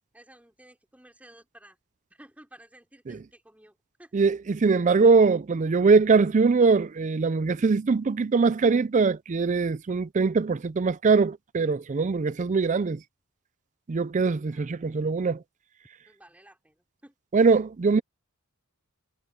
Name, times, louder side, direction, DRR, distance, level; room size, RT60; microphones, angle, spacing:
voice 1, 0.1-1.8 2.1-4.1 14.5-14.7 16.1-17.1, right 1 dB, 5° right, 4.5 m, -54 dB
voice 2, 4.1-13.0 13.9-15.4 17.3-18.0, right 4 dB, 35° right, 0.4 m, -22 dB
head